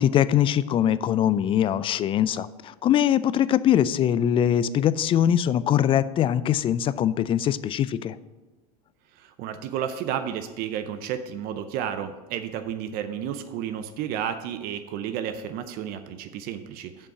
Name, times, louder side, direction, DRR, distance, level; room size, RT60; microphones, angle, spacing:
voice 1, 0.0-8.2, left 10 dB, 25° left, 16 dB, 0.3 m, -22 dB
voice 2, 9.2-17.1, right 9 dB, 50° right, 9 dB, 0.6 m, -32 dB
7.0 x 5.4 x 5.9 m, 1.2 s
hypercardioid pair, 100°, 20 cm